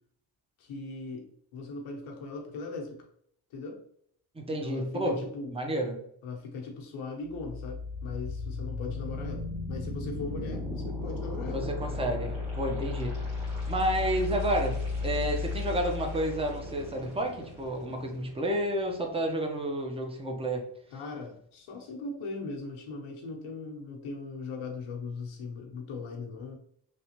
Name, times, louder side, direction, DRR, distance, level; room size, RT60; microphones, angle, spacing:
voice 1, 0.6-3.0 3.5-3.8 4.5-5.5 6.2-11.6 20.9-26.6, left 3 dB, 75° left, 1 dB, 1.0 m, -39 dB
voice 2, 4.3-5.2 5.5-6.0 11.5-13.2 13.7-20.6, right 1 dB, 10° right, 2 dB, 0.7 m, -30 dB
sound 1, 7.3-19.3, left 3 dB, 90° right, 1.4 m, -35 dB
3.3 x 2.4 x 2.9 m, 0.66 s
cardioid pair, 70°, 50 cm